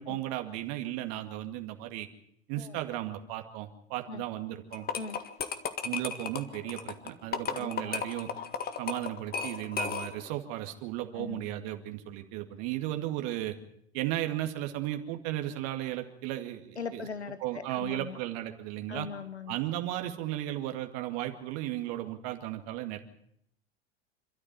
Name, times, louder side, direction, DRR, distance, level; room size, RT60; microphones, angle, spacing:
voice 1, 0.0-2.1 2.5-4.9 5.8-8.3 8.8-13.6 13.9-17.1 17.4-19.1 19.5-23.0, right 14 dB, 50° right, 6 dB, 2.2 m, -35 dB
sound 1, 4.7-10.3, left 6 dB, 30° left, 1.8 m, -35 dB
voice 2, 16.8-18.2 18.9-19.6, left 5 dB, 85° left, 12 dB, 1.1 m, -40 dB
27.0 x 13.0 x 9.1 m, 0.70 s
figure-of-eight pair, 80°, 32 cm